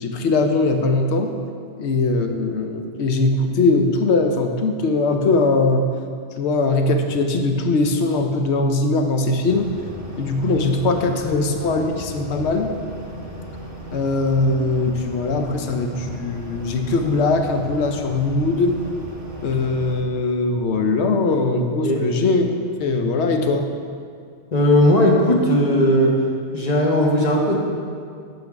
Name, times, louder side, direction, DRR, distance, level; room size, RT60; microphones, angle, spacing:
voice 1, 0.0-1.3 1.8-5.9 6.4-9.7 10.2-12.7 13.9-18.8 19.4-22.4 22.8-23.7, left 3 dB, 70° left, 5 dB, 0.9 m, -20 dB
sound 1, 9.5-20.0, equal, 20° right, 0.8 m, -35 dB
voice 2, 24.5-26.2 26.5-27.7, equal, 40° left, -1 dB, 0.9 m, -17 dB
8.2 x 3.4 x 5.7 m, 2.2 s
omnidirectional pair, 1.2 m